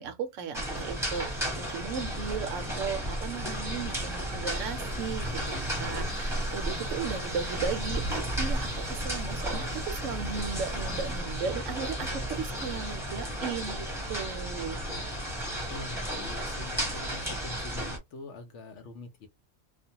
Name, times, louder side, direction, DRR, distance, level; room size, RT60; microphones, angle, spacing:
voice 1, 0.0-5.4 5.8-14.8, right 6 dB, 70° right, 0.9 m, -36 dB
sound 1, 0.5-18.0, equal, ahead, 0.8 m, -34 dB
sound 2, 4.8-11.2, right 1 dB, 80° left, 1.0 m, -39 dB
sound 3, 8.5-17.7, left 1 dB, 35° left, 1.1 m, -47 dB
voice 2, 15.7-19.3, left 2 dB, 65° left, 0.9 m, -44 dB
2.4 x 2.1 x 2.7 m
omnidirectional pair, 1.4 m